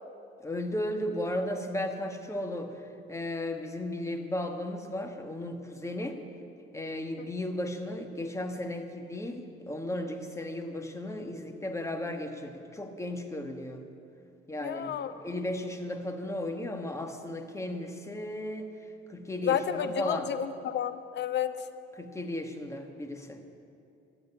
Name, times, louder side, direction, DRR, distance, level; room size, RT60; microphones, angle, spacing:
voice 1, 0.4-2.7 3.1-6.2 6.7-13.8 14.5-18.7 19.1-20.3 22.0-23.4, left 1 dB, 15° left, 5 dB, 1.5 m, -35 dB
voice 2, 14.6-15.1 19.4-21.5, left 9 dB, 60° left, 11 dB, 0.8 m, -31 dB
13.5 x 7.8 x 9.9 m, 2.6 s
cardioid pair, 90°, 20 cm